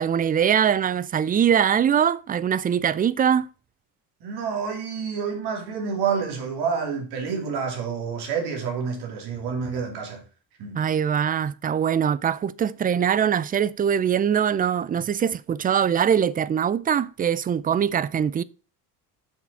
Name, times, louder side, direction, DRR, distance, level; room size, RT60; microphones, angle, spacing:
voice 1, 0.0-3.5 10.7-18.4, right 8 dB, 25° right, 0.3 m, -22 dB
voice 2, 4.2-10.2 10.6-10.8, right 6 dB, 80° right, 2.9 m, -28 dB
7.3 x 6.1 x 4.1 m
cardioid pair, 115°, 39 cm